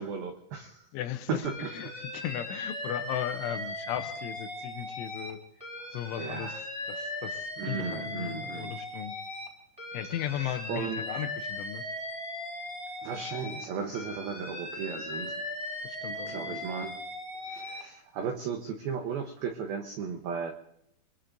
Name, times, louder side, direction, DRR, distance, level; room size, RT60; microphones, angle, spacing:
voice 1, 0.0-0.9 1.3-1.7 6.2-6.6 7.6-8.7 10.4-11.0 13.0-15.4 16.3-17.0 17.5-20.5, right 6 dB, 85° right, 5 dB, 2.1 m, -35 dB
voice 2, 0.9-5.4 5.9-6.6 6.9-9.1 9.9-11.8 15.8-16.6, left 11 dB, 80° left, 8 dB, 3.0 m, -36 dB
Alarm, 1.4-5.3 5.6-9.5 9.8-13.6 13.9-17.8, left 1 dB, ahead, 3.5 m, -38 dB
25.0 x 22.0 x 2.6 m, 0.74 s
omnidirectional pair, 5.8 m